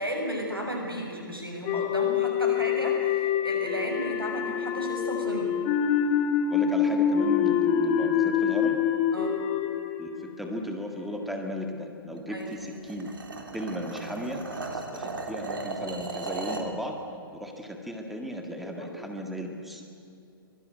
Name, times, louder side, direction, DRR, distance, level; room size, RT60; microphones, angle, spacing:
voice 1, 0.0-5.5 9.1-9.4 12.3-12.5 18.8-19.0, equal, 85° right, 1 dB, 7.2 m, -33 dB
sound 1, 1.6-10.9, left 8 dB, 25° left, 1.4 m, -26 dB
voice 2, 6.5-8.8 10.0-13.1 13.5-14.4 14.7-17.0 17.3-19.8, equal, ahead, 2 dB, 2.0 m, -36 dB
sound 2, 12.4-16.7, right 3 dB, 65° right, 3.5 m, -36 dB
24.5 x 19.5 x 9.2 m, 2.6 s
figure-of-eight pair, 120°, 12 cm